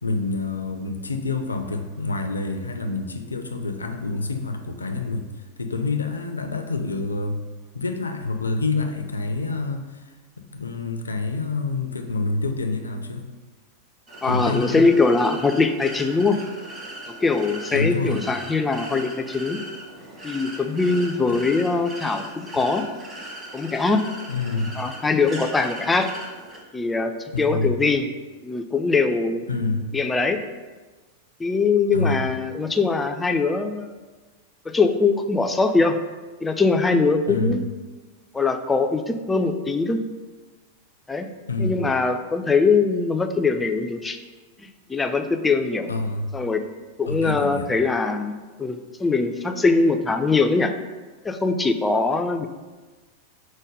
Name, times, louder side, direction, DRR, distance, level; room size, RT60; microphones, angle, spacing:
voice 1, 0.0-5.2 5.6-7.4 7.7-10.0 10.4-13.3 14.2-14.9 17.7-18.2 21.3-21.4 24.3-24.7 27.3-27.7 29.5-29.9 31.9-32.3 37.3-37.6 41.5-41.8 45.9-46.3 47.1-47.7, left 3 dB, 75° left, 6 dB, 0.4 m, -27 dB
sound 1, 14.1-26.6, right 1 dB, 25° right, 1.1 m, -39 dB
voice 2, 14.2-16.4 17.1-19.6 20.2-22.9 23.5-24.0 24.8-26.1 26.7-28.1 28.4-29.5 29.9-30.4 31.4-34.0 34.7-36.0 36.4-37.6 38.3-40.0 41.1-41.3 41.6-44.2 44.6-45.9 46.3-46.6 47.0-50.7 51.2-52.5, left 4 dB, 10° left, 6 dB, 0.3 m, -22 dB
5.1 x 2.2 x 4.7 m, 1.3 s
figure-of-eight pair, 90°, 0 cm